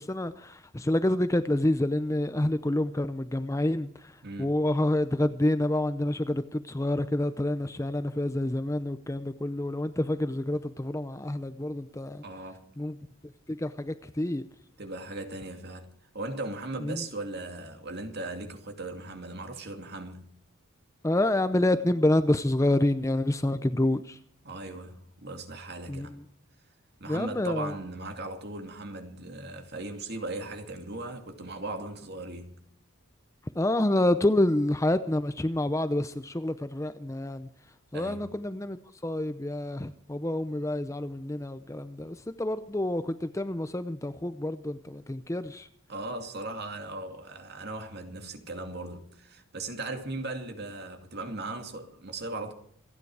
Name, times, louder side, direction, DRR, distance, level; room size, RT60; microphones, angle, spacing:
voice 1, 0.0-12.2 12.8-12.9 13.5-14.4 16.8-17.1 21.0-24.2 25.9-26.2 27.1-27.8 33.5-37.5 37.9-45.7, left 1 dB, 15° left, 0.6 m, -28 dB
voice 2, 4.2-4.5 12.2-12.7 14.8-20.3 24.4-26.2 27.0-32.5 37.9-38.2 45.9-52.5, right 2 dB, 50° right, 2.4 m, -38 dB
27.0 x 9.7 x 4.8 m
head